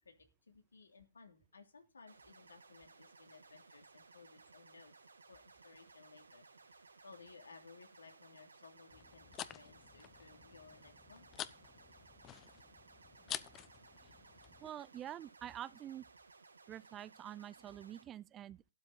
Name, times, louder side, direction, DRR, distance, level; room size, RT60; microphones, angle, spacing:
voice 1, 0.0-11.3 13.8-13.9 14.3-14.4, left 4 dB, 85° left, 3.0 m, -60 dB
sound 1, 2.1-18.0, right 4 dB, 90° right, 2.0 m, -61 dB
sound 2, 8.9-14.7, left 11 dB, 25° left, 0.8 m, -49 dB
voice 2, 14.6-16.1 16.7-18.7, right 11 dB, 25° right, 0.5 m, -47 dB
12.5 x 11.5 x 3.9 m
hypercardioid pair, 125°, 0 cm